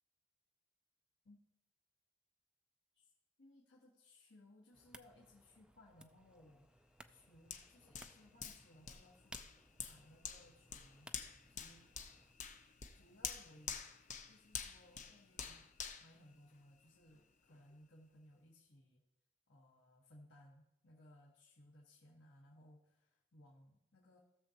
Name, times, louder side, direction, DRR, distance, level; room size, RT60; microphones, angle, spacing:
voice 1, 3.4-6.7 7.1-9.4 9.8-11.9 12.9-13.8 14.3-15.6 16.0-19.0 19.5-24.2, left 1 dB, 65° left, -3 dB, 1.5 m, -63 dB
sound 1, 4.7-12.3, right 1 dB, 5° right, 0.4 m, -62 dB
Hands, 7.5-17.0 17.5-17.6, left 7 dB, 40° left, 0.7 m, -49 dB
17.0 x 6.8 x 2.9 m, 0.83 s
head